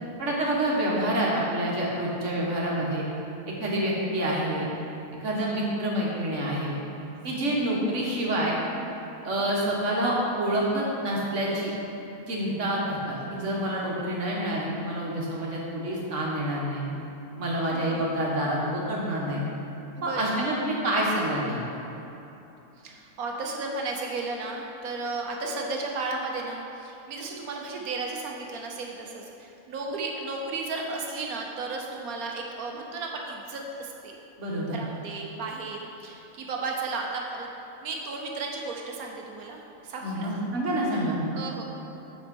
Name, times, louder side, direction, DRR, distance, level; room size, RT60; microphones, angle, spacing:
voice 1, 0.2-3.1 3.5-4.7 5.2-6.7 7.2-8.5 9.2-11.7 12.3-16.9 17.4-19.4 20.0-21.6 34.4-34.8 40.0-41.3, right 1 dB, 55° right, -4 dB, 1.7 m, -27 dB
voice 2, 17.7-18.1 20.0-20.4 22.8-34.1 34.7-37.5 37.8-40.4 41.0-41.1 41.3-41.6, right 3 dB, 75° right, 0 dB, 1.4 m, -34 dB
7.2 x 6.1 x 5.3 m, 3.0 s
omnidirectional pair, 1.6 m